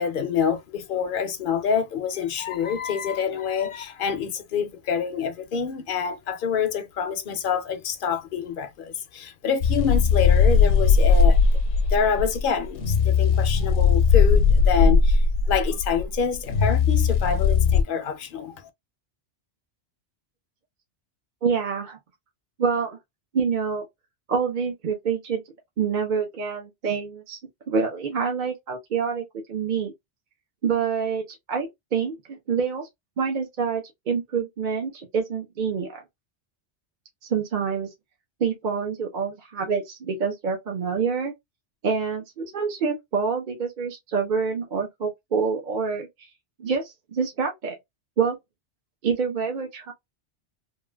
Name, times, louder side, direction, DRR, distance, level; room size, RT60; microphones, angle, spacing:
voice 1, 0.0-11.4 11.9-18.7, left 7 dB, 55° left, 0.7 m, -27 dB
sound 1, 9.6-17.8, left 5 dB, 80° left, 1.0 m, -19 dB
voice 2, 21.4-22.0 22.6-23.0 23.3-23.8 24.3-25.4 25.8-27.4 27.7-29.9 30.6-32.9 33.2-36.0 37.3-37.9 38.4-41.3 41.8-46.1 46.6-47.7 48.2-48.4 49.0-49.9, right 6 dB, 50° right, 0.8 m, -26 dB
3.1 x 2.4 x 2.2 m
omnidirectional pair, 1.2 m